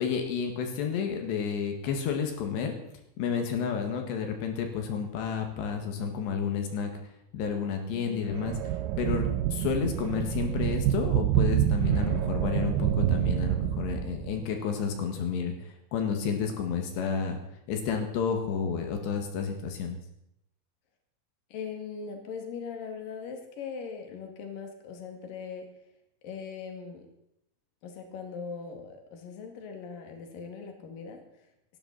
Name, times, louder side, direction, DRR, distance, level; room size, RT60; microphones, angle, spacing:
voice 1, 0.0-2.7 3.2-6.9 7.3-8.6 9.0-17.4 17.7-20.0, left 6 dB, 90° left, 4 dB, 4.1 m, -31 dB
voice 2, 7.9-8.5 21.5-25.7 26.2-27.1 27.8-31.2, left 6 dB, 60° left, 4 dB, 3.7 m, -40 dB
sound 1, 8.3-14.4, right 12 dB, 80° right, 2.2 m, -27 dB
18.5 x 15.5 x 4.2 m, 0.79 s
omnidirectional pair, 4.8 m